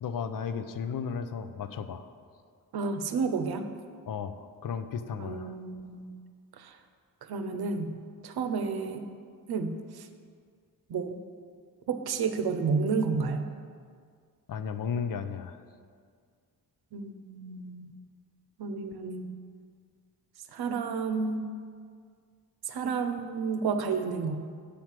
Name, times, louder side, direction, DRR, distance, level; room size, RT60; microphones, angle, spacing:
voice 1, 0.0-2.1 4.1-5.5 14.5-15.6, left 6 dB, 60° left, 10 dB, 0.6 m, -34 dB
voice 2, 2.7-3.7 5.2-6.2 6.6-6.8 7.2-7.9 8.2-9.0 9.5-10.1 10.9-11.2 11.9-13.5 16.9-17.9 18.6-19.3 20.5-21.4 22.7-24.4, right 5 dB, 90° right, 8 dB, 0.7 m, -31 dB
8.6 x 4.6 x 7.4 m, 2.1 s
wide cardioid pair, 155°, 37 cm